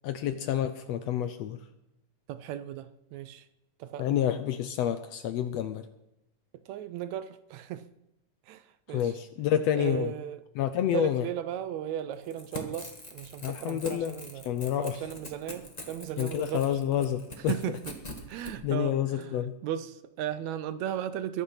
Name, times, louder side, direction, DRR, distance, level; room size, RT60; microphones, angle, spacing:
voice 1, 0.0-1.6 4.0-5.8 8.9-10.1 10.6-11.2 13.4-14.2 14.5-15.0 16.2-17.5 18.6-19.5, left 10 dB, 75° left, 1.6 m, -28 dB
voice 2, 2.3-3.5 3.8-4.1 6.7-7.8 8.5-9.2 9.8-10.4 10.9-14.5 14.8-16.8 17.4-18.0 18.3-19.4 19.6-21.4, right 10 dB, 75° right, 1.8 m, -36 dB
Crackle / Tearing, 12.2-18.5, left 1 dB, 20° left, 1.3 m, -44 dB
21.5 x 10.0 x 5.7 m
omnidirectional pair, 3.5 m